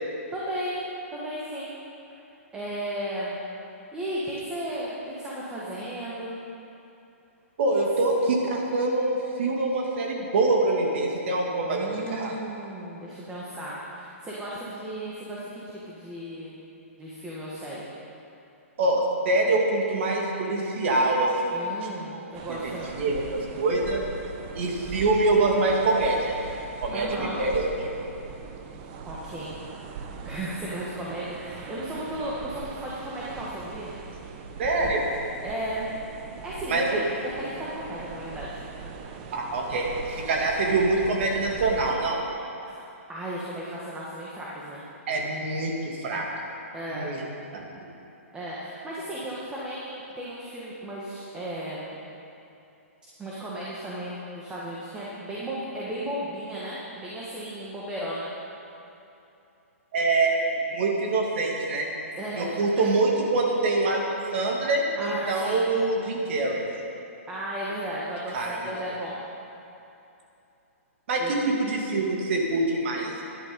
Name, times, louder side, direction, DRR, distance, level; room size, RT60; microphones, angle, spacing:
voice 1, 0.3-0.8 1.1-1.7 2.5-3.4 3.9-6.3 11.7-16.5 17.0-17.9 21.5-22.9 26.9-27.5 29.0-29.5 30.2-33.9 35.4-35.9 36.4-38.6 42.6-42.8 43.1-44.8 46.7-47.1 48.3-52.0 53.2-58.3 62.2-62.8 65.0-65.7 67.3-69.1 71.2-71.4, right 1 dB, 10° right, -7 dB, 1.6 m, -35 dB
voice 2, 7.6-12.3 18.8-24.0 24.5-26.3 26.8-27.9 34.6-35.0 36.7-36.9 39.3-42.2 45.1-46.2 46.9-47.2 47.5-47.7 59.9-61.9 62.4-64.0 64.3-66.7 68.3-68.7 71.1-73.2, right 2 dB, 50° right, 0 dB, 2.5 m, -25 dB
sound 1, 22.3-42.0, right 5 dB, 35° right, 0.9 m, -40 dB
12.5 x 11.0 x 5.3 m, 2.8 s
hypercardioid pair, 155°, 8 cm